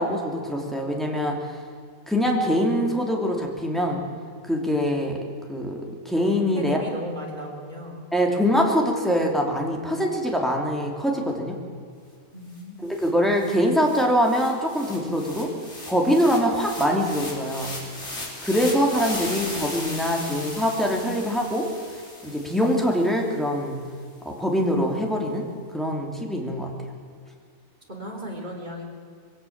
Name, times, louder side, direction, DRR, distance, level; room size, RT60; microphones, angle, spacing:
voice 1, 0.0-1.6 2.1-4.0 4.5-5.2 5.5-6.8 8.1-11.6 12.8-15.5 15.9-17.7 18.4-21.7 22.2-23.8 24.2-25.5 25.7-26.7, equal, ahead, 0 dB, 3.0 m, -23 dB
voice 2, 6.5-8.1 12.3-12.8 27.9-28.8, equal, 30° right, -1 dB, 3.7 m, -36 dB
sound 1, 12.6-12.7 12.9-23.3, left 1 dB, 50° left, 4.0 m, -37 dB
22.0 x 17.5 x 7.4 m, 2.1 s
omnidirectional pair, 1.5 m